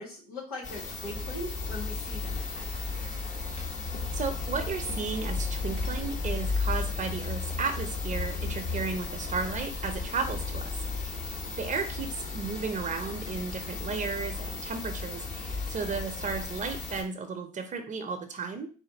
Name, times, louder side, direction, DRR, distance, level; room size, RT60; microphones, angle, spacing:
voice 1, 0.0-2.7, left 1 dB, 85° left, -3 dB, 1.6 m, -40 dB
sound 1, 0.6-17.0, left 4 dB, 40° left, 1.5 m, -34 dB
voice 2, 4.1-11.2 11.5-18.7, right 5 dB, 40° right, 6 dB, 0.8 m, -34 dB
4.3 x 2.5 x 4.0 m, 0.38 s
hypercardioid pair, 55°, 19 cm